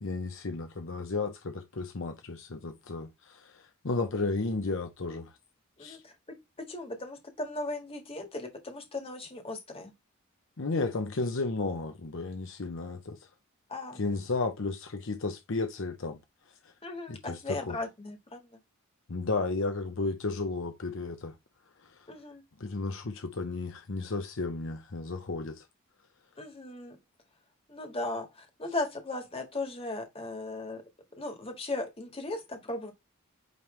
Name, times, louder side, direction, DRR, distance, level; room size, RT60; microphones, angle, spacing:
voice 1, 0.0-5.3 5.8-6.0 10.6-13.2 14.0-16.2 17.1-17.8 19.1-21.4 21.8-21.9 22.6-25.6, left 3 dB, 65° left, 0.8 m, -33 dB
voice 2, 5.8-6.1 6.6-9.9 13.7-14.0 16.8-18.6 22.1-22.4 26.4-27.0 27.7-30.8 31.2-32.9, left 2 dB, 25° left, 1.7 m, -37 dB
9.1 x 3.2 x 3.2 m
head